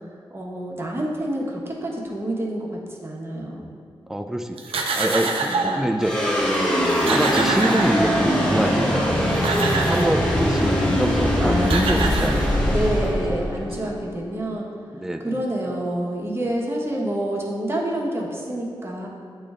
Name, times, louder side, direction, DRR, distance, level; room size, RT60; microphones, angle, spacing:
voice 1, 0.3-3.7 5.4-5.8 11.4-14.7 15.2-19.1, right 1 dB, 25° right, -3 dB, 1.2 m, -28 dB
voice 2, 4.1-6.1 7.0-9.6 9.9-12.8 13.0-13.1 13.6-13.7 14.9-15.4, right 1 dB, 5° right, 6 dB, 0.4 m, -25 dB
sound 1, 4.6-5.9 6.5-6.6 6.8-8.4 9.1-10.2 11.3-11.4 11.6-12.9, right 3 dB, 90° right, 0.5 m, -26 dB
sound 2, 6.0-14.5, equal, 10° left, 1.3 m, -22 dB
8.3 x 3.2 x 3.6 m, 2.1 s
cardioid pair, 55°, 9 cm